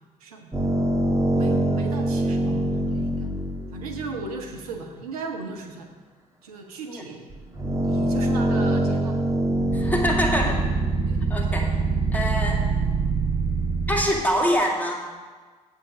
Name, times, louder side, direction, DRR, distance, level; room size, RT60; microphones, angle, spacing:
voice 1, 0.2-0.5 1.3-3.3 3.7-5.9 6.4-7.3 7.8-9.2 11.1-11.3, right 4 dB, 80° right, 3 dB, 0.9 m, -36 dB
sound 1, 0.5-4.6 7.3-14.1, right 2 dB, 15° right, 1.7 m, -24 dB
voice 2, 9.7-10.6 11.3-11.7 12.1-12.6 13.9-14.9, equal, 10° left, 0 dB, 2.2 m, -24 dB
8.1 x 8.0 x 5.0 m, 1.4 s
figure-of-eight pair, 45°, 19 cm